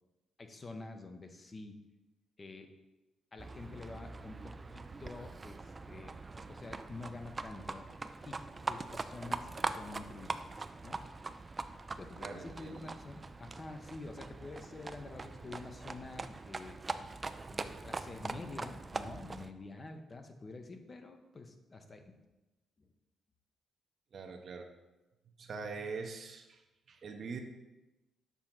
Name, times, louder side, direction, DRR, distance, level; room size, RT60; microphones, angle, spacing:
voice 1, 0.4-1.8 2.4-2.7 3.3-6.2 6.5-7.9 8.2-10.5 10.8-11.0 12.0-16.8 17.5-22.2 22.8-22.9, left 3 dB, 35° left, 6 dB, 0.7 m, -48 dB
Livestock farm animals working animals, 3.4-19.5, right 3 dB, 30° right, 0.3 m, -42 dB
voice 2, 12.2-12.9 24.1-24.7 25.4-27.4, right 4 dB, 55° right, 4 dB, 0.8 m, -43 dB
6.9 x 2.9 x 5.9 m, 1.0 s
cardioid pair, 75°, 0 cm